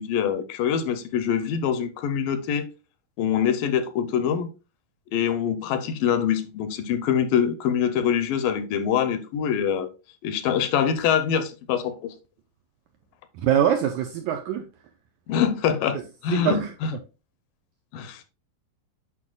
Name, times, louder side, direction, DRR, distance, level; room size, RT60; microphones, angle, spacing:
voice 1, 0.0-2.7 3.2-4.5 5.1-9.9 10.2-12.1 15.3-16.9 17.9-18.2, left 8 dB, 80° left, 2.3 m, -24 dB
voice 2, 13.4-14.7 16.3-16.7, right 10 dB, 85° right, 1.7 m, -23 dB
8.5 x 5.6 x 2.3 m
omnidirectional pair, 4.0 m